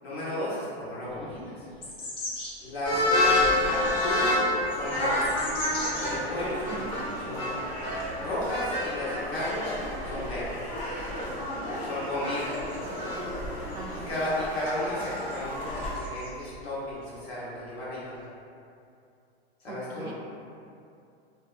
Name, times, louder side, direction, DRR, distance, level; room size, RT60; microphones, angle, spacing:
voice 1, 0.0-1.7 2.6-3.4 3.6-4.4 4.7-5.3 6.0-6.8 7.2-7.6 8.2-9.7 10.0-10.5 11.8-12.6 14.1-18.1 19.6-20.1, left 1 dB, 75° left, -9 dB, 1.2 m, -33 dB
sound 1, 1.1-2.6 3.2-6.1 6.6-6.7 7.0-7.2 7.9-9.2 9.5-13.3 13.7-14.3 15.1-17.2 17.5-18.2, left 2 dB, 15° left, 0.4 m, -43 dB
sound 2, 2.8-15.9, left 1 dB, 40° left, 1.0 m, -29 dB
voice 2, 3.3-4.0 6.7-6.9 12.9-13.4 13.7-14.1 19.7-20.1, right 4 dB, 45° right, -1 dB, 0.4 m, -43 dB
2.6 x 2.1 x 2.4 m, 2.5 s
hypercardioid pair, 105°, 32 cm